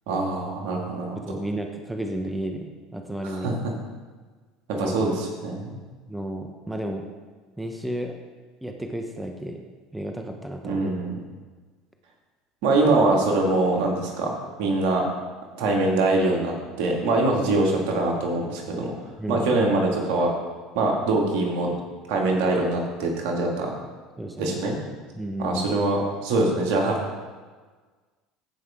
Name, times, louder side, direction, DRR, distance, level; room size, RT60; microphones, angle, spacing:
voice 1, 0.1-1.2 3.2-3.5 4.7-5.8 10.6-11.2 12.6-14.3 14.6-15.1 15.6-18.9 19.3-20.3 20.7-21.7 22.1-23.7 24.4-24.7 25.4-27.3, right 2 dB, 70° right, -1 dB, 2.2 m, -23 dB
voice 2, 1.2-3.7 4.8-5.0 6.1-7.1 7.6-8.2 8.6-9.6 9.9-10.9 19.2-19.5 24.2-24.6 25.1-25.7, right 1 dB, 5° right, 3 dB, 1.1 m, -32 dB
14.5 x 5.5 x 3.8 m, 1.4 s
hypercardioid pair, 85°, 0 cm